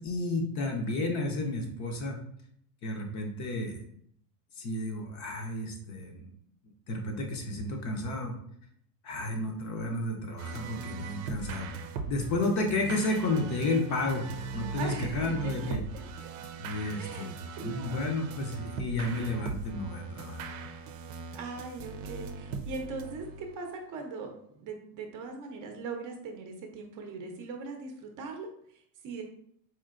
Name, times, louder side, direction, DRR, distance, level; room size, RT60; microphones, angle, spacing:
voice 1, 0.0-2.2 2.8-3.8 4.6-6.3 6.9-8.3 9.0-11.7 12.1-15.8 16.6-17.4 17.6-20.5, left 2 dB, 35° left, 2 dB, 0.7 m, -32 dB
sound 1, 10.4-23.7, right 4 dB, 85° right, 0.6 m, -40 dB
voice 2, 14.7-16.3 17.0-18.1 21.3-29.2, right 4 dB, 40° right, 3 dB, 0.7 m, -40 dB
4.4 x 2.7 x 2.5 m, 0.67 s
supercardioid pair, 130°, 48 cm